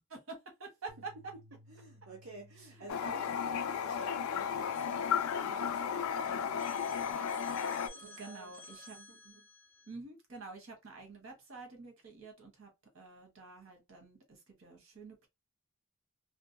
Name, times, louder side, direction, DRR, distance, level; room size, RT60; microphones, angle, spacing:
voice 1, 0.1-1.1 2.7-2.9 8.0-9.0 9.9-12.7 12.9-15.3, right 3 dB, 70° right, 1.1 m, -48 dB
Bass guitar, 0.9-7.1, left 1 dB, 45° right, 0.5 m, -62 dB
voice 2, 1.7-8.5 8.9-9.5, right 2 dB, 85° right, 0.7 m, -52 dB
Toilet flush, 2.9-7.9, left 7 dB, 80° left, 0.3 m, -34 dB
Telephone, 4.7-6.1 6.6-9.9, left 1 dB, 10° left, 0.4 m, -54 dB
2.5 x 2.3 x 2.5 m
head